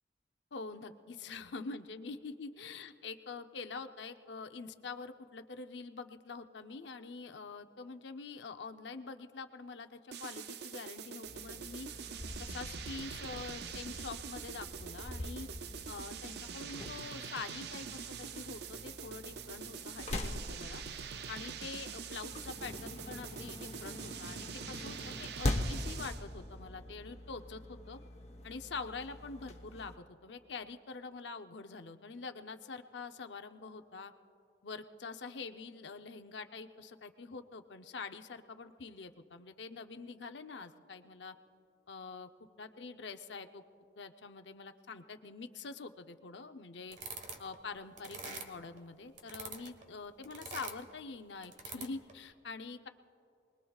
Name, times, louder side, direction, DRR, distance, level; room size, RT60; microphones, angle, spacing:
voice 1, 0.5-11.9 12.4-15.5 15.9-20.8 21.3-28.0 28.4-34.1 34.6-41.3 41.9-42.3 42.6-43.6 44.0-47.0 47.4-52.9, left 4 dB, 70° left, 8 dB, 0.7 m, -45 dB
sound 1, 10.1-26.3, right 7 dB, 60° right, 0.5 m, -45 dB
sound 2, 11.2-30.0, left 1 dB, 35° left, 1.0 m, -43 dB
sound 3, 46.9-47.6 48.0-48.8 49.2-49.8 50.2-50.9 51.4-52.1, right 4 dB, 40° right, 1.3 m, -44 dB
27.5 x 21.0 x 2.4 m, 2.6 s
head